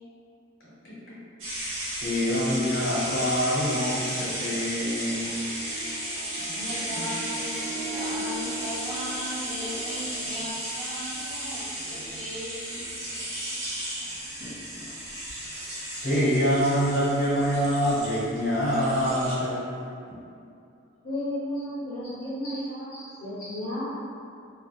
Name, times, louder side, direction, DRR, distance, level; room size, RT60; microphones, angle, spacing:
voice 1, 0.6-1.2 1.6-5.3 7.0-7.1 14.4-14.9 15.4-19.8 20.1-20.2, equal, 70° left, -11 dB, 1.0 m, -26 dB
sound 1, 1.4-19.4, right 1 dB, 90° right, 0.8 m, -34 dB
Harp, 5.1-10.4, right 1 dB, 60° right, 1.0 m, -39 dB
voice 2, 6.3-12.9 13.4-13.5 13.7-14.1, equal, 25° right, -12 dB, 0.7 m, -38 dB
voice 3, 21.0-23.8, left 1 dB, 45° left, -10 dB, 0.7 m, -33 dB
2.5 x 2.3 x 2.3 m, 2.5 s
head